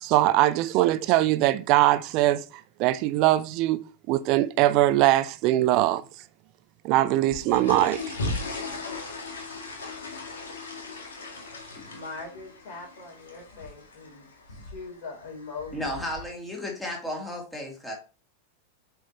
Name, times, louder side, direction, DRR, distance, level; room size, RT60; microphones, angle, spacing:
voice 1, 0.0-2.4 2.8-6.0 6.8-8.0, right 15 dB, 40° right, 0.5 m, -22 dB
sound 1, 7.2-16.2, left 2 dB, 65° left, 1.8 m, -37 dB
voice 2, 11.9-16.0, left 4 dB, 50° left, 3.7 m, -41 dB
voice 3, 15.7-17.9, left 1 dB, 5° left, 2.7 m, -33 dB
8.3 x 4.7 x 3.1 m
figure-of-eight pair, 90°, 0 cm